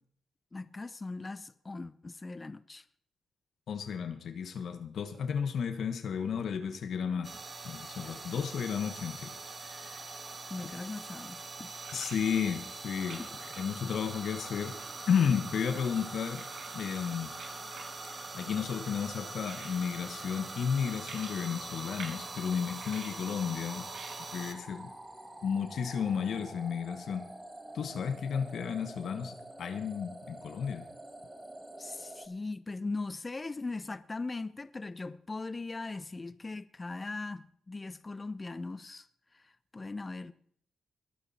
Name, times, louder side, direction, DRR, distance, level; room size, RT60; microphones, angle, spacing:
voice 1, 0.5-2.9 10.5-11.7 13.2-13.3 31.8-39.1 39.3-40.3, left 3 dB, 30° left, 0.6 m, -40 dB
voice 2, 3.7-7.3 7.6-9.3 9.6-10.1 11.9-13.2 13.5-14.8 15.1-16.5 16.7-17.4 18.3-23.9 24.3-24.9 25.4-27.3 27.7-30.8, left 7 dB, 65° left, 1.2 m, -33 dB
sound 1, 7.2-24.5, right 3 dB, 35° right, 2.0 m, -44 dB
sound 2, 10.7-26.4, right 4 dB, 80° right, 7.2 m, -54 dB
sound 3, 12.9-32.3, right 1 dB, 15° right, 2.1 m, -48 dB
21.5 x 9.0 x 4.2 m
supercardioid pair, 65°, 0 cm